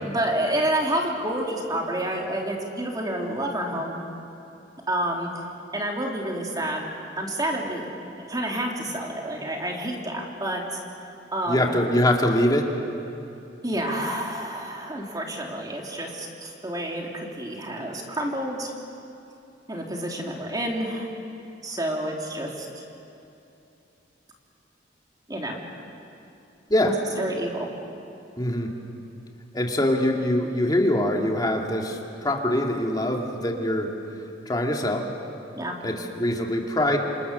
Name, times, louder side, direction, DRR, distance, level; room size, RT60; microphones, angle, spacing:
voice 1, 0.0-4.0 4.9-5.3 5.7-6.8 7.2-7.9 8.2-10.8 11.3-11.7 13.6-18.7 19.7-21.1 21.6-22.7 25.3-25.6 26.8-27.7 35.6-35.7, right 1 dB, 20° right, 0 dB, 3.2 m, -29 dB
voice 2, 11.5-12.7 26.7-27.0 28.4-28.7 29.5-33.9 34.5-35.1 35.8-37.0, left 1 dB, 20° left, 1 dB, 2.3 m, -23 dB
28.0 x 26.0 x 6.9 m, 2.8 s
head